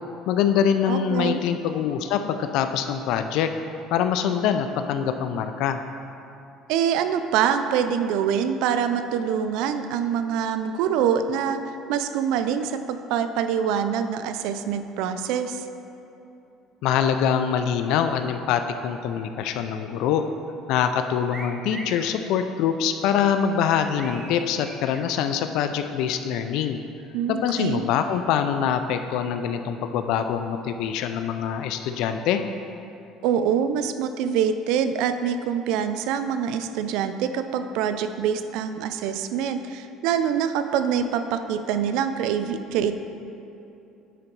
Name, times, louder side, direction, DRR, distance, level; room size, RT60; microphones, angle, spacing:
voice 1, 0.3-3.5 3.9-5.8 16.8-20.2 20.7-26.8 27.3-32.4, left 8 dB, 70° left, 8 dB, 0.3 m, -24 dB
voice 2, 0.9-1.4 6.7-11.6 11.9-15.6 27.1-27.9 33.2-43.0, right 8 dB, 75° right, 9 dB, 0.4 m, -25 dB
sound 1, 21.3-22.1 23.6-25.1, right 2 dB, 20° right, 0.6 m, -40 dB
9.0 x 3.9 x 4.6 m, 2.8 s
cardioid pair, 135°, 0 cm